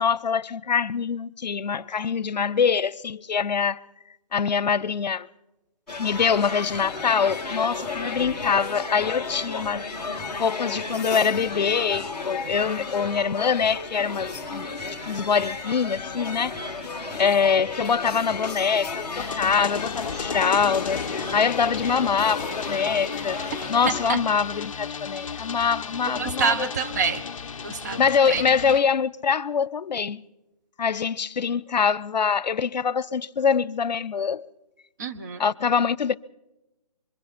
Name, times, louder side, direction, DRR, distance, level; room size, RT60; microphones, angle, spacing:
voice 1, 0.0-3.8 4.3-5.3 6.0-16.6 17.2-23.4 23.7-26.7 28.0-30.2 30.8-34.5 35.4-36.1, left 6 dB, 90° left, 0.7 m, -24 dB
sound 1, 5.9-24.1, left 4 dB, ahead, 2.1 m, -33 dB
sound 2, 19.1-28.8, left 6 dB, 50° left, 0.7 m, -34 dB
voice 2, 23.8-24.2 26.2-27.2 27.6-28.4 35.0-35.4, right 5 dB, 25° right, 0.9 m, -27 dB
26.0 x 24.0 x 4.3 m
hypercardioid pair, 165°, 21 cm